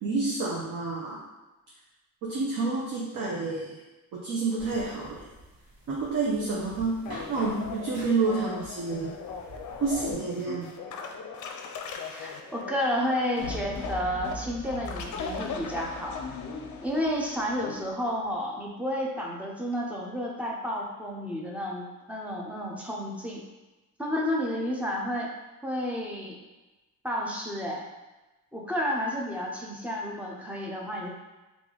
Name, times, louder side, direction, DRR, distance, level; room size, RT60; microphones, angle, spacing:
voice 1, 0.0-1.2 2.2-3.8 4.1-5.2 5.9-7.0 7.3-9.1 9.8-10.7, right 3 dB, 65° right, -4 dB, 0.7 m, -29 dB
sound 1, 4.6-10.1, right 1 dB, 90° right, 1.5 m, -46 dB
sound 2, 7.1-17.8, left 5 dB, 60° left, 0.5 m, -39 dB
voice 2, 12.1-16.3 16.8-23.4 24.0-25.3 25.6-26.4 27.0-27.8 28.5-31.1, equal, 5° right, -2 dB, 0.5 m, -31 dB
sound 3, 13.4-17.7, left 2 dB, 15° left, 0.9 m, -41 dB
3.3 x 2.5 x 3.7 m, 1.1 s
cardioid pair, 145°, 35 cm